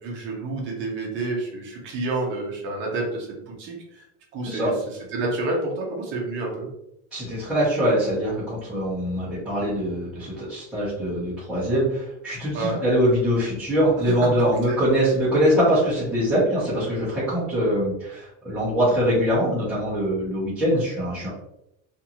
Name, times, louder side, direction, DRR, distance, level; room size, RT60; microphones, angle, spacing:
voice 1, 0.0-4.0 4.3-4.7 5.1-6.7 12.5-12.8 14.7-14.8, right 2 dB, 30° right, -1 dB, 0.7 m, -29 dB
voice 2, 7.1-21.3, equal, ahead, -13 dB, 0.7 m, -23 dB
2.5 x 2.5 x 2.8 m, 0.82 s
supercardioid pair, 170°, 37 cm